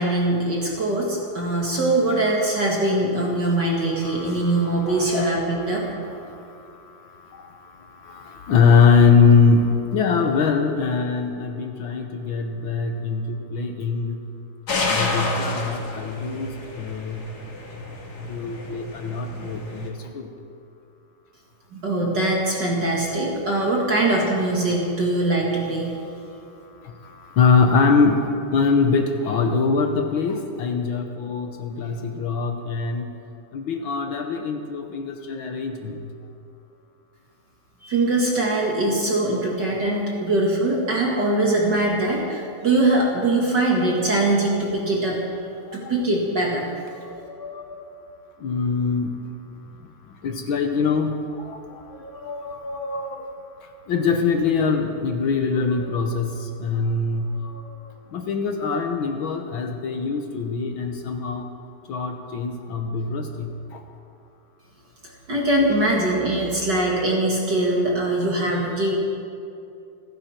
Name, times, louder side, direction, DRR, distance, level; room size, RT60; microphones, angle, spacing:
voice 1, 0.0-5.8 21.7-26.0 37.8-45.2 45.7-46.6 65.3-68.9, right 2 dB, 40° right, -2 dB, 2.2 m, -22 dB
voice 2, 4.0-6.4 7.3-7.7 8.0-14.2 14.8-17.3 18.3-20.3 27.0-28.2 28.5-33.1 33.5-36.0 45.8-45.9 47.0-47.8 48.4-49.2 50.2-53.3 53.9-57.7 58.1-61.5 61.9-63.8, left 5 dB, 65° left, 4 dB, 1.3 m, -23 dB
sound 1, 14.7-19.9, left 3 dB, 40° left, 2.0 m, -30 dB
29.0 x 10.5 x 4.4 m, 2.6 s
omnidirectional pair, 3.4 m